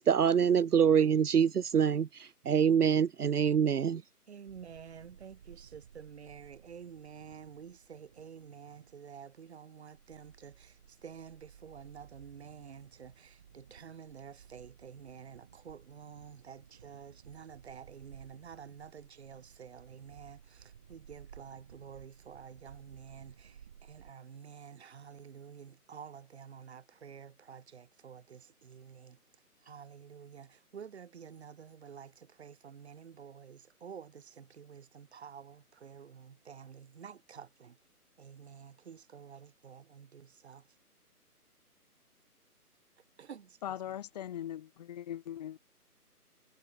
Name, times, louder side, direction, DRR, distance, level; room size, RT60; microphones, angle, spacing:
voice 1, 0.0-2.1 2.5-4.0, right 7 dB, 75° right, 0.8 m, -25 dB
voice 2, 4.3-29.2 29.6-37.8 38.2-40.7 43.2-44.0, right 7 dB, 45° right, 6.3 m, -50 dB
sound 1, 4.5-24.1, right 8 dB, 5° right, 0.8 m, -58 dB
voice 3, 43.6-45.6, left 11 dB, 25° left, 2.6 m, -40 dB
figure-of-eight pair, 155°, 46 cm